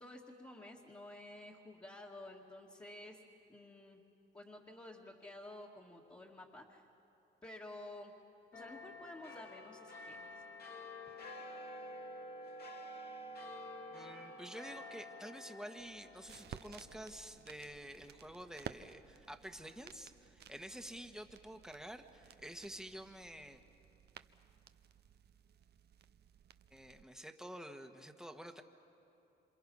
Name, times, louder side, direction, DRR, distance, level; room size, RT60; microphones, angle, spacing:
voice 1, 0.0-3.2 3.5-4.0 4.3-6.8 7.4-8.1 8.5-10.3, left 1 dB, 20° left, -3 dB, 2.1 m, -52 dB
sound 1, 8.5-19.3 19.7-19.8, left 1 dB, 50° left, 2.4 m, -50 dB
voice 2, 13.9-23.6 26.7-28.6, equal, 5° right, 5 dB, 1.5 m, -49 dB
sound 2, 15.8-27.0, right 9 dB, 55° right, 0.7 m, -55 dB
28.0 x 26.5 x 5.6 m, 2.9 s
cardioid pair, 90°, 20 cm